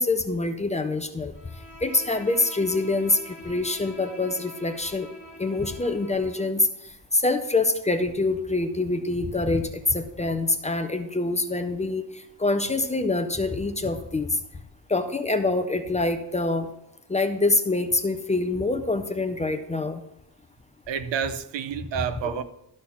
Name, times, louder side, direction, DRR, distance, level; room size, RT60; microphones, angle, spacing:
voice 1, 0.0-1.3 1.8-5.1 5.4-6.7 7.1-12.0 12.4-14.4 14.9-16.7 17.1-20.0 22.2-22.4, left 2 dB, 15° left, 0.4 m, -25 dB
Bowed string instrument, 1.3-6.5, equal, 5° right, 2.2 m, -45 dB
voice 2, 20.9-22.4, right 8 dB, 85° right, 0.8 m, -29 dB
12.0 x 4.3 x 5.7 m
wide cardioid pair, 180°, 43 cm